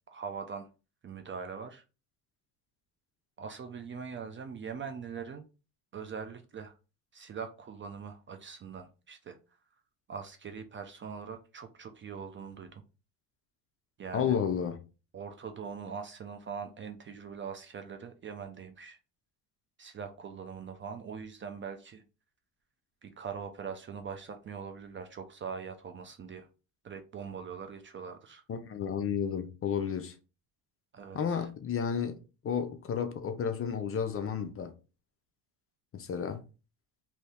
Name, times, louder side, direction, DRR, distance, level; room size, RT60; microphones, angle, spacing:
voice 1, 0.1-0.7 1.0-1.8 3.4-5.4 5.9-6.7 7.1-9.4 10.1-12.8 14.0-14.4 15.1-19.0 19.8-22.0 23.0-26.5 26.8-28.4 30.9-31.4, right 6 dB, 30° right, 0.4 m, -42 dB
voice 2, 14.1-14.8 28.5-30.2 31.1-34.7 35.9-36.4, left 7 dB, 35° left, 0.5 m, -32 dB
2.7 x 2.7 x 3.3 m
cardioid pair, 105°, 40 cm